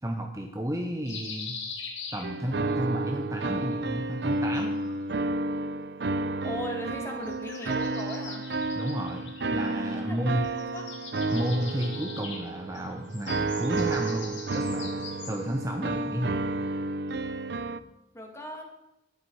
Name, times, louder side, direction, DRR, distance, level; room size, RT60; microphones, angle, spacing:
voice 1, 0.0-1.6 2.1-4.8 8.8-10.5 11.3-16.5, equal, 15° right, 3 dB, 0.9 m, -32 dB
sound 1, 1.1-2.8 4.2-5.3 7.2-10.2 10.4-15.6, left 5 dB, 75° left, 2.7 m, -42 dB
sound 2, 2.2-17.8, right 2 dB, 60° right, 0.6 m, -31 dB
voice 2, 6.4-8.5 10.0-10.8 18.1-18.6, equal, 15° left, 1 dB, 2.3 m, -38 dB
13.0 x 10.5 x 4.9 m, 0.92 s
head